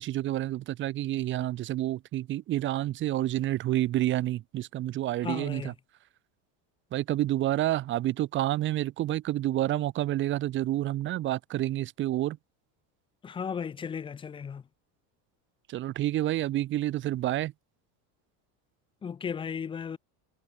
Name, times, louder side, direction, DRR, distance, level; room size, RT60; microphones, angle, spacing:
voice 1, 0.0-5.7 6.9-12.4 15.7-17.5, right 14 dB, 25° right, 0.8 m, -29 dB
voice 2, 5.2-5.7 13.2-14.6 19.0-20.0, left 7 dB, 10° left, 0.6 m, -35 dB
cardioid pair, 175°, 44 cm